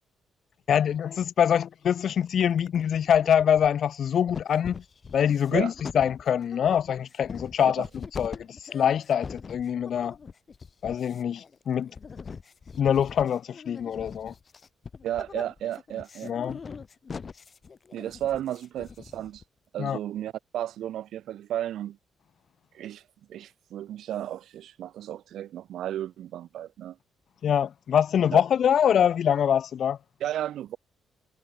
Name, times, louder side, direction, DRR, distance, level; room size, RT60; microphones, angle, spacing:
voice 1, 0.7-4.8 5.1-10.2 10.8-11.9 12.8-14.3 15.3-15.4 16.2-16.6 19.8-20.0 27.4-30.0, left 8 dB, 60° left, 0.6 m, -24 dB
sound 1, 2.3-2.8 3.1-4.0 4.3-19.4, left 5 dB, 40° left, 7.2 m, -42 dB
voice 2, 15.0-16.3 17.9-19.4 19.7-22.0 22.7-23.0 23.3-27.0 28.3-28.4 30.2-30.8, right 12 dB, 75° right, 6.4 m, -33 dB
cardioid pair, 90°, 0 cm